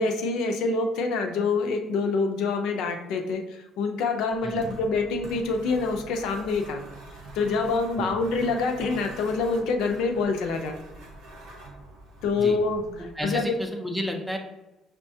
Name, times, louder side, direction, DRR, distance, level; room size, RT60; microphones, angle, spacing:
voice 1, 0.0-6.8 7.3-10.7 12.2-12.9 13.2-13.6, left 4 dB, 80° left, 5 dB, 0.5 m, -26 dB
sound 1, 4.2-13.6, right 2 dB, 90° right, 0.8 m, -45 dB
voice 2, 13.0-14.4, equal, ahead, 3 dB, 0.4 m, -32 dB
6.1 x 2.2 x 2.7 m, 1.0 s
cardioid pair, 160°, 0 cm